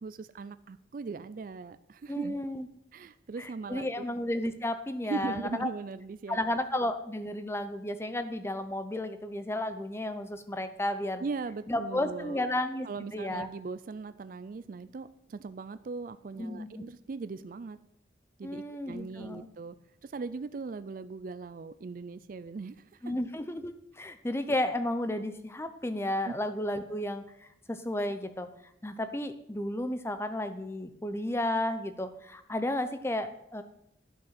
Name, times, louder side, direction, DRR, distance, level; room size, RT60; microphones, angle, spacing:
voice 1, 0.0-2.4 2.9-4.1 5.0-6.4 11.2-12.5 12.8-17.8 18.4-19.8 20.0-22.8 26.2-26.3, right 4 dB, 50° right, 13 dB, 0.4 m, -39 dB
voice 2, 2.1-2.7 3.4-5.7 6.3-11.2 11.7-13.5 16.4-16.8 18.4-19.5 23.0-27.2 27.7-28.5 28.8-33.6, left 1 dB, 15° left, 9 dB, 0.6 m, -33 dB
10.5 x 6.1 x 5.8 m, 0.77 s
head